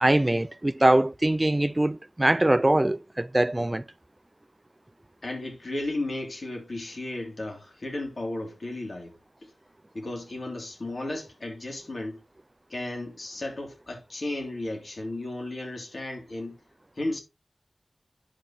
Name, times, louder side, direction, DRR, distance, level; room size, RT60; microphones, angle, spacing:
voice 1, 0.0-3.8, right 1 dB, 30° right, 0.4 m, -22 dB
voice 2, 5.2-9.1 9.4-9.5 9.9-12.2 12.7-16.6 17.0-17.2, left 2 dB, 70° left, 3.3 m, -34 dB
10.0 x 6.2 x 3.1 m
wide cardioid pair, 45°, 0 cm